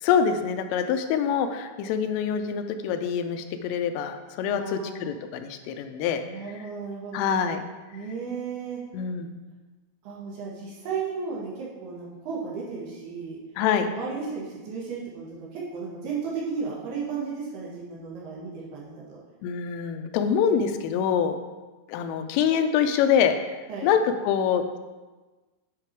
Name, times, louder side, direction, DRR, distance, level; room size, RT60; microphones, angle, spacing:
voice 1, 0.0-6.2 7.1-7.6 8.9-9.3 13.6-13.9 19.4-21.4 21.9-23.3 23.8-24.8, left 7 dB, 85° left, 7 dB, 3.2 m, -25 dB
voice 2, 4.5-5.1 6.2-7.6 7.9-8.8 10.0-13.4 13.8-19.2 23.7-23.9, right 5 dB, 65° right, -5 dB, 3.0 m, -34 dB
9.9 x 5.7 x 4.5 m, 1.2 s
omnidirectional pair, 5.8 m